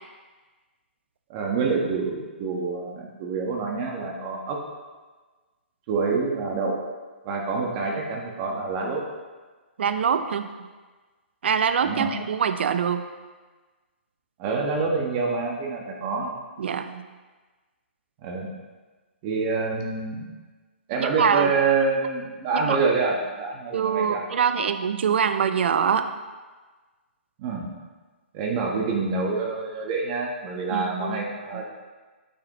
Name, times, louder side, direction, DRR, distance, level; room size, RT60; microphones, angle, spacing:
voice 1, 1.3-4.6 5.9-6.8 7.2-9.0 11.8-12.1 14.4-16.3 18.2-18.5 19.2-20.3 20.9-24.2 27.4-27.7 28.3-31.6, right 4 dB, 35° right, 0 dB, 1.3 m, -26 dB
voice 2, 9.8-10.5 11.4-13.0 16.6-17.0 21.0-21.5 22.6-22.8 23.7-26.0 30.7-31.2 31.5-31.6, right 7 dB, 65° right, 10 dB, 0.6 m, -24 dB
8.3 x 6.0 x 3.1 m, 1.3 s
hypercardioid pair, 130°, 6 cm